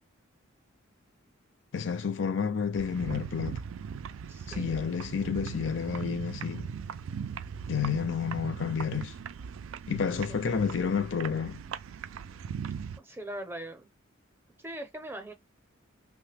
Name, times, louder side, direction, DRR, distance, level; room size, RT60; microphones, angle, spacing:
voice 1, 1.7-3.6 4.5-6.7 7.7-9.1 9.9-11.6, left 6 dB, 60° left, 0.5 m, -30 dB
sound 1, 2.8-13.0, right 6 dB, 80° right, 0.3 m, -39 dB
voice 2, 4.3-4.7 13.0-13.9 14.6-15.3, right 1 dB, 10° right, 0.6 m, -40 dB
3.0 x 2.1 x 3.3 m
head